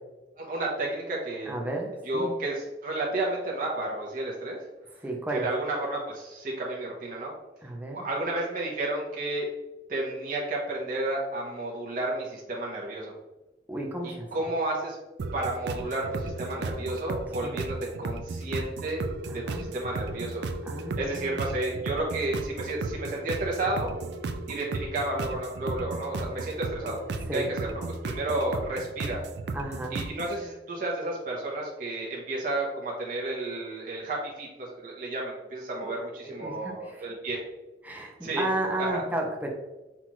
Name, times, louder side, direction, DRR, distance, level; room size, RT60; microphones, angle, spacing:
voice 1, 0.4-1.5 2.1-2.5 2.8-4.6 5.4-7.3 7.9-9.5 9.9-13.1 14.0-15.0 15.3-19.0 19.3-20.4 21.0-23.9 24.5-27.0 27.3-27.7 28.0-29.2 29.9-37.4 38.2-38.4 38.8-39.0, right 2 dB, 50° right, -4 dB, 0.9 m, -31 dB
voice 2, 1.5-2.4 5.0-5.5 7.6-8.0 13.7-14.5 17.4-17.6 19.3-19.7 20.6-21.6 27.3-27.5 29.5-30.0 35.8-35.9 36.2-37.1 37.8-39.5, right 1 dB, 10° right, 0 dB, 0.6 m, -33 dB
sound 1, 15.2-30.4, right 3 dB, 65° right, 0.3 m, -35 dB
5.7 x 2.4 x 3.0 m, 1.1 s
head